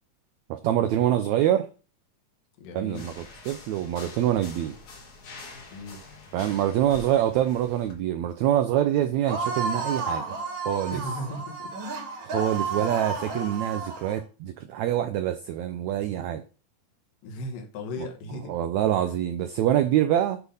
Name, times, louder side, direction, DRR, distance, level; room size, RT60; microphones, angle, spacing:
voice 1, 0.5-1.7 2.7-4.7 6.3-10.4 10.6-11.0 12.2-16.4 18.5-20.4, right 11 dB, 90° right, 1.6 m, -25 dB
voice 2, 2.6-3.1 5.7-6.0 10.9-11.7 12.7-12.9 17.2-18.5, left 1 dB, 80° left, 2.9 m, -36 dB
sound 1, 2.9-8.0, left 3 dB, 65° left, 3.3 m, -45 dB
sound 2, 9.3-14.2, right 3 dB, 50° right, 1.8 m, -32 dB
8.0 x 3.4 x 5.5 m
omnidirectional pair, 3.9 m